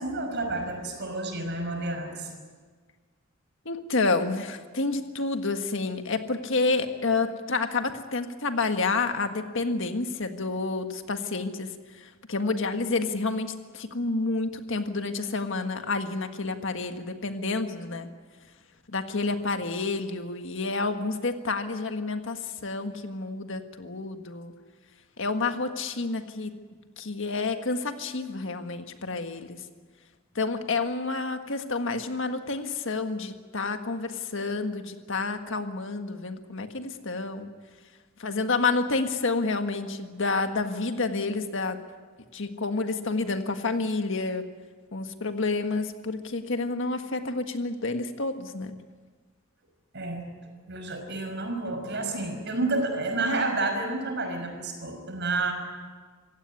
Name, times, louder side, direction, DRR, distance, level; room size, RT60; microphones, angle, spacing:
voice 1, 0.0-2.3 49.9-50.3 50.7-55.5, right 2 dB, 60° right, 5 dB, 5.7 m, -30 dB
voice 2, 3.6-11.7 12.0-18.1 18.9-24.5 25.2-26.5 27.0-29.6 30.3-37.5 38.2-41.8 42.3-44.4 44.9-48.8, left 3 dB, 65° left, 7 dB, 1.7 m, -29 dB
26.5 x 16.0 x 9.8 m, 1.5 s
head